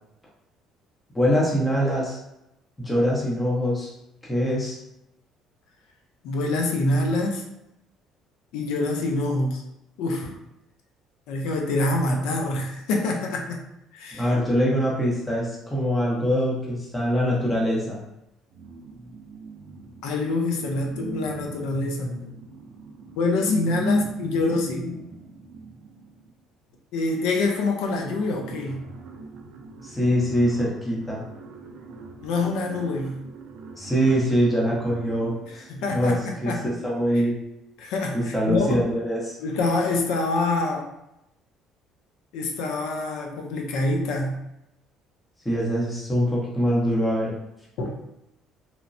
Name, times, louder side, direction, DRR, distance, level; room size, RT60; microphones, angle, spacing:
voice 1, 1.1-2.2 2.8-3.9 4.3-4.8 14.1-18.0 29.8-31.2 33.8-35.6 35.9-36.2 36.4-37.3 38.1-39.4 45.4-47.3, equal, 10° left, -5 dB, 0.7 m, -23 dB
voice 2, 6.2-7.4 8.5-9.6 10.0-10.4 11.3-13.6 13.9-14.3 20.0-22.4 23.2-25.0 26.9-28.8 32.2-33.2 35.5-36.6 37.1-37.2 37.8-38.9 39.4-40.9 42.3-44.4 47.8-47.9, left 2 dB, 80° left, 2 dB, 0.5 m, -26 dB
sound 1, 18.5-20.3 20.8-26.4 27.4-27.5 27.7-36.6, right 4 dB, 65° right, 0.4 m, -43 dB
3.0 x 2.1 x 2.5 m, 0.87 s
cardioid pair, 140°, 0 cm